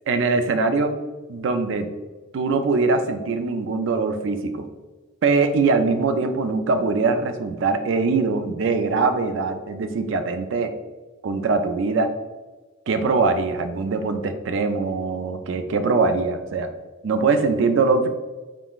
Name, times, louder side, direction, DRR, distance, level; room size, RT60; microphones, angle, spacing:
voice 1, 0.1-0.9 1.3-1.9 2.3-4.7 5.2-10.7 11.2-12.1 12.9-16.7 17.0-18.1, right 4 dB, 65° right, 8 dB, 0.4 m, -22 dB
3.7 x 3.5 x 2.4 m, 1.2 s
head